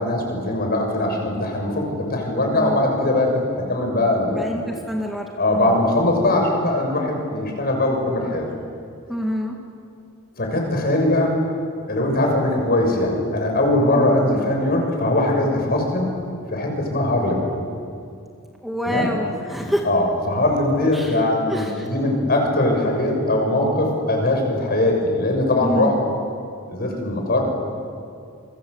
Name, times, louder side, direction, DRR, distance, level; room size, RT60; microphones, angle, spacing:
voice 1, 0.0-3.4 3.7-4.5 5.4-8.5 10.4-11.4 11.9-16.1 16.5-17.4 18.8-19.1 19.8-25.9 26.7-27.4, left 1 dB, 45° left, 2 dB, 6.6 m, -21 dB
voice 2, 2.5-2.9 4.3-5.7 9.1-9.6 14.3-14.5 18.6-19.8 20.9-21.2 21.5-21.9 25.6-26.0, equal, ahead, 0 dB, 2.0 m, -27 dB
28.0 x 24.0 x 8.1 m, 2.4 s
head